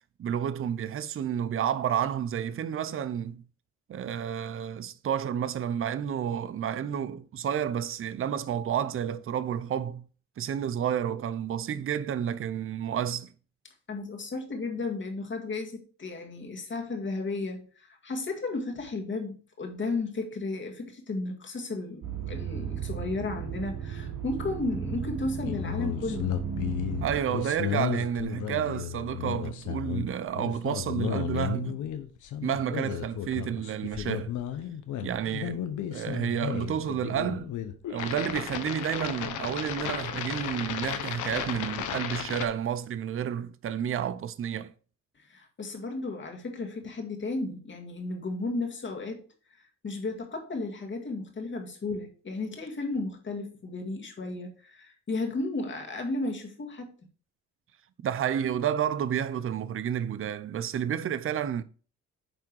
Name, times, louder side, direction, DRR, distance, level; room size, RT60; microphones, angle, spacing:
voice 1, 0.2-3.4 3.9-10.0 10.4-13.3 27.0-31.8 32.4-34.3 35.0-35.6 35.9-37.5 37.9-44.7 58.0-61.6, right 9 dB, 45° right, 0.6 m, -30 dB
voice 2, 13.9-26.3 45.2-49.2 49.8-56.9, left 3 dB, 40° left, 2.1 m, -34 dB
sound 1, 22.0-27.2, right 7 dB, 80° right, 2.9 m, -35 dB
sound 2, 25.4-42.5, left 10 dB, 80° left, 1.1 m, -34 dB
9.3 x 3.6 x 4.7 m
cardioid pair, 90°, 30 cm